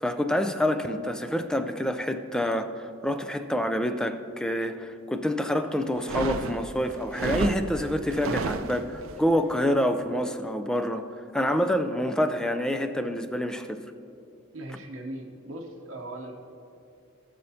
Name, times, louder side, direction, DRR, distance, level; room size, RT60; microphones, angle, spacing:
voice 1, 0.0-11.1 11.3-13.8, equal, 5° left, 8 dB, 0.4 m, -27 dB
sound 1, 5.9-9.2, right 4 dB, 80° right, 0.5 m, -32 dB
voice 2, 14.5-16.3, right 1 dB, 65° right, -2 dB, 0.9 m, -39 dB
19.0 x 6.4 x 2.8 m, 2.6 s
head